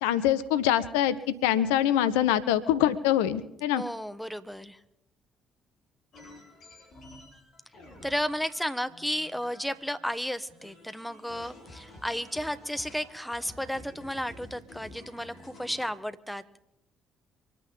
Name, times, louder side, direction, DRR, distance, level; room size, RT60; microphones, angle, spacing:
voice 1, 0.0-3.8, left 11 dB, 70° left, 15 dB, 0.5 m, -24 dB
voice 2, 3.7-4.8 8.0-16.4, equal, ahead, 11 dB, 1.1 m, -33 dB
sound 1, 6.1-10.2 10.5-15.9, left 1 dB, 55° left, 4.4 m, -51 dB
24.5 x 9.2 x 5.4 m, 0.82 s
figure-of-eight pair, 45°, 0 cm